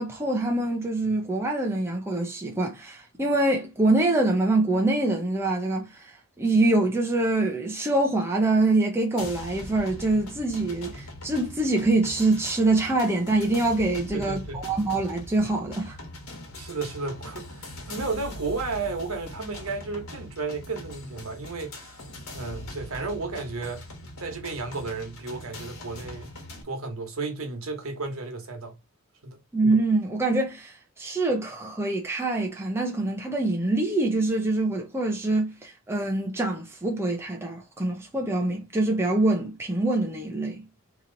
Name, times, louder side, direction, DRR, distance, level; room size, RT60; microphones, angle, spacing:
voice 1, 0.0-6.0 6.4-16.0 29.5-40.6, right 2 dB, 10° right, 0.6 m, -25 dB
sound 1, 9.2-26.6, left 1 dB, 85° left, 1.4 m, -41 dB
voice 2, 14.1-14.6 16.5-22.0 22.3-23.8 24.2-26.3 26.6-28.7 29.2-29.4, right 3 dB, 70° right, 1.2 m, -33 dB
3.0 x 2.9 x 3.8 m
head